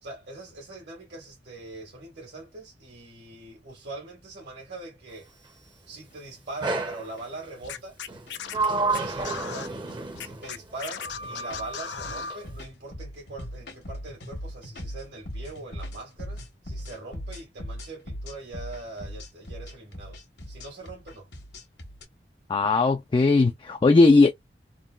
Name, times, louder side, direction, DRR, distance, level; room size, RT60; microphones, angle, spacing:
voice 1, 0.0-5.3 5.9-8.0 8.7-9.9 10.2-20.2 20.5-21.3, right 2 dB, 70° right, 1.6 m, -42 dB
sound 1, 6.0-6.1 6.8-7.2 7.6-7.8 8.1-8.3 8.9-9.5 9.8-10.0 10.3-10.7 11.0-22.0, equal, 70° left, 1.2 m, -39 dB
Sliding door, 6.6-7.1 8.1-10.5 11.0-12.4, right 3 dB, 25° right, 0.7 m, -30 dB
Scratching (performance technique), 7.6-9.7 10.1-12.3, left 8 dB, 90° left, 0.5 m, -37 dB
voice 2, 22.5-24.3, left 3 dB, 30° left, 0.3 m, -18 dB
3.7 x 2.3 x 2.3 m
head